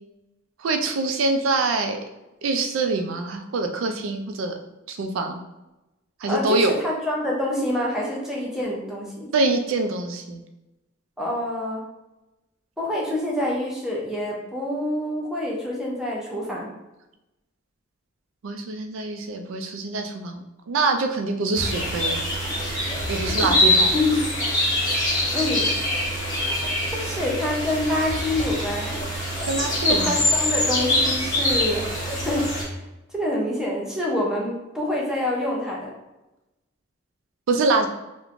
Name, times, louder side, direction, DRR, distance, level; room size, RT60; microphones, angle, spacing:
voice 1, 0.6-2.0 2.4-4.5 4.9-5.4 6.2-6.7 9.3-10.4 18.4-20.4 20.7-22.2 23.1-23.9 29.5-30.2 37.5-37.9, right 3 dB, 80° right, 5 dB, 0.4 m, -24 dB
voice 2, 6.3-9.3 11.2-11.8 12.8-16.7 23.5-23.6 23.9-24.2 25.3-25.7 26.9-28.9 29.8-31.8 32.1-32.6 33.1-35.9, left 1 dB, 5° right, -4 dB, 0.5 m, -26 dB
sound 1, 21.5-32.6, left 1 dB, 20° left, 1.0 m, -24 dB
3.0 x 2.1 x 2.4 m, 0.98 s
head